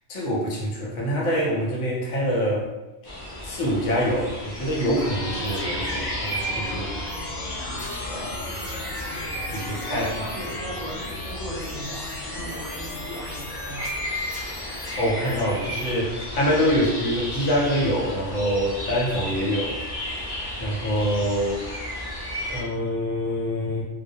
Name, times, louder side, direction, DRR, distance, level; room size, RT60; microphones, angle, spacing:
voice 1, 0.1-2.7 3.4-6.9 8.1-8.5 9.5-10.1 15.0-20.3 20.6-21.6 22.5-23.8, equal, 85° left, -3 dB, 1.0 m, -25 dB
sound 1, 3.0-22.6, equal, 40° left, 0.3 m, -34 dB
sound 2, 4.9-15.9, left 2 dB, 65° left, 0.8 m, -36 dB
voice 2, 9.9-13.9, right 1 dB, 50° right, -6 dB, 0.6 m, -38 dB
2.2 x 2.1 x 2.6 m, 1.1 s
omnidirectional pair, 1.2 m